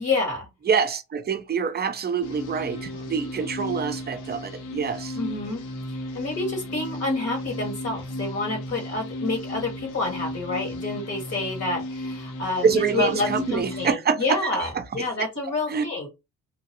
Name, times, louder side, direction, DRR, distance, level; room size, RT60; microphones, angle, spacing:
voice 1, 0.0-0.5 5.1-5.6 5.9-16.1, left 3 dB, 55° left, 1.6 m, -28 dB
voice 2, 0.6-5.2 12.6-14.5 14.8-15.1 15.7-15.9, right 6 dB, 35° right, 0.5 m, -26 dB
sound 1, 2.2-13.9, equal, 85° left, 0.6 m, -34 dB
2.9 x 2.5 x 2.7 m
cardioid pair, 90°, 30 cm